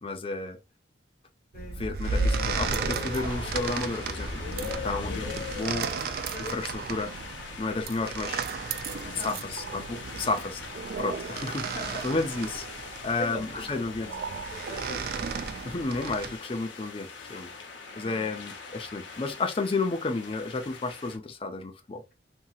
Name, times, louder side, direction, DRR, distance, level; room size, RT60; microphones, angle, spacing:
voice 1, 0.0-0.6 1.8-4.3 4.6-5.9 6.5-7.1 7.6-8.4 9.1-10.6 11.0-11.7 12.0-14.1 15.7-17.5 18.0-22.0, left 3 dB, 30° left, 0.4 m, -32 dB
voice 2, 1.5-1.8 6.3-6.6 9.0-9.4 11.6-12.1 13.2-15.1 17.9-18.3, equal, 45° left, 1.2 m, -41 dB
sound 1, 1.5-16.4, right 5 dB, 55° right, 0.3 m, -34 dB
sound 2, 2.0-21.2, left 3 dB, 85° left, 0.7 m, -40 dB
2.8 x 2.7 x 2.4 m
head